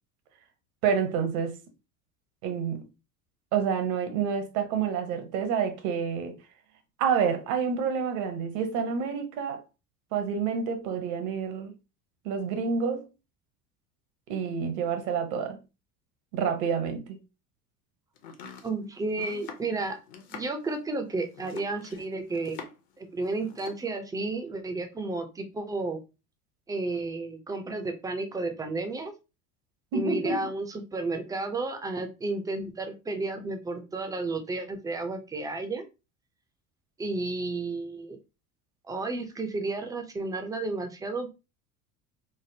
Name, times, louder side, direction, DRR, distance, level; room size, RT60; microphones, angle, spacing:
voice 1, 0.8-1.6 2.4-2.8 3.5-6.4 7.0-9.6 10.1-11.7 12.2-13.1 14.3-15.6 16.3-17.2 29.9-30.3, right 6 dB, 60° right, 0.8 m, -28 dB
Domestic sounds home sounds, 18.2-23.0 23.2-23.9, left 5 dB, 45° left, 0.7 m, -46 dB
voice 2, 18.6-20.0 20.3-22.6 23.0-26.0 26.7-29.1 29.9-35.8 37.0-38.2 38.9-41.3, right 3 dB, 10° right, 0.4 m, -32 dB
3.4 x 2.0 x 2.7 m
hypercardioid pair, 75°, 47 cm